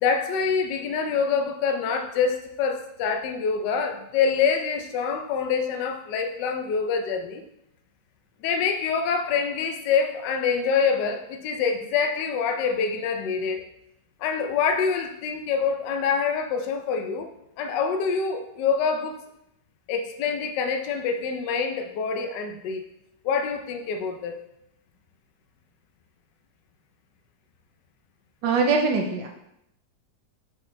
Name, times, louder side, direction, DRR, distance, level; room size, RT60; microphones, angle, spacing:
voice 1, 0.0-7.4 8.4-13.6 14.2-17.3 17.6-19.2 19.9-22.8 23.2-24.3, left 6 dB, 75° left, 5 dB, 1.2 m, -26 dB
voice 2, 28.4-29.3, right 4 dB, 80° right, 3 dB, 1.4 m, -22 dB
7.2 x 5.2 x 3.2 m, 0.80 s
omnidirectional pair, 2.0 m